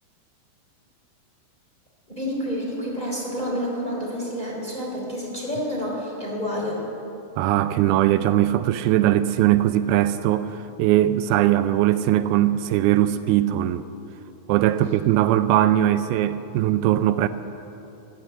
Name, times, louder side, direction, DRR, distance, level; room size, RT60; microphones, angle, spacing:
voice 1, 2.1-6.8, equal, 10° left, -4 dB, 3.2 m, -29 dB
voice 2, 7.4-13.9 14.5-17.3, right 13 dB, 85° right, 11 dB, 2.4 m, -20 dB
15.0 x 11.0 x 8.0 m, 2.9 s
omnidirectional pair, 4.4 m